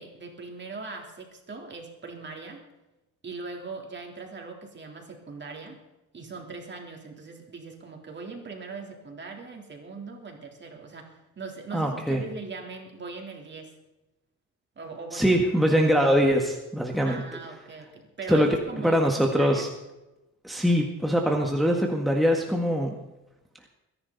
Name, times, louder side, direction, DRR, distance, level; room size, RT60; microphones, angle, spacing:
voice 1, 0.0-2.6 3.2-5.8 6.1-13.7 14.8-15.7 17.0-19.7, right 4 dB, 35° right, 2 dB, 3.7 m, -40 dB
voice 2, 11.7-12.2 15.1-17.2 18.3-18.6 18.8-19.7 20.4-23.0, equal, ahead, 1 dB, 1.8 m, -23 dB
23.0 x 11.0 x 4.1 m, 1.0 s
cardioid pair, 90°, 30 cm